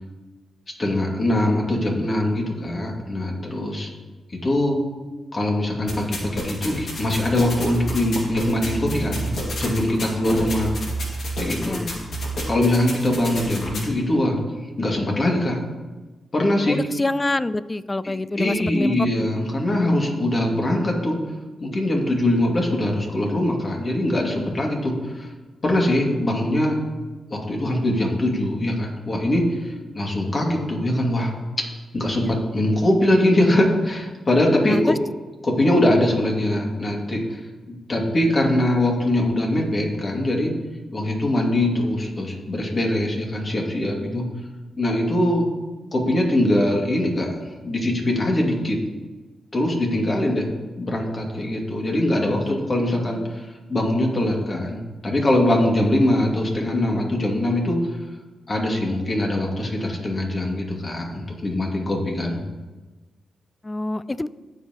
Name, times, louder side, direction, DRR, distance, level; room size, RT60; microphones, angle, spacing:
voice 1, 0.8-3.9 4.3-4.8 5.3-9.3 9.6-10.7 11.4-11.8 12.5-14.4 14.8-15.6 16.3-16.8 18.0-21.2 21.6-25.3 25.6-26.8 27.3-31.3 31.9-34.9 35.4-37.4 37.7-40.5 40.9-44.3 44.8-45.4 45.9-47.3 47.6-48.8 49.5-50.5 50.8-57.9 58.5-62.4, left 1 dB, 40° left, 0 dB, 2.2 m, -22 dB
sound 1, 5.9-13.9, right 1 dB, 65° left, 2.1 m, -30 dB
voice 2, 11.6-12.0 16.7-19.3 32.2-32.4 34.7-35.0 52.2-52.6 53.0-53.4 63.6-64.3, left 2 dB, 25° left, 17 dB, 0.4 m, -27 dB
16.0 x 5.6 x 3.0 m, 1.2 s
cardioid pair, 55°, 0 cm